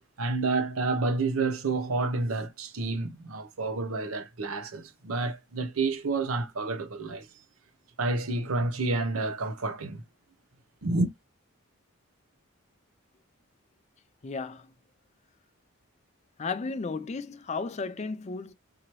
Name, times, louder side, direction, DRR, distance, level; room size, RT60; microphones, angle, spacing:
voice 1, 0.2-7.3 8.0-10.0 10.8-11.1, right 3 dB, 80° right, 0.7 m, -29 dB
voice 2, 14.2-14.7 16.4-18.5, left 4 dB, 30° left, 0.4 m, -34 dB
3.8 x 2.9 x 3.0 m
head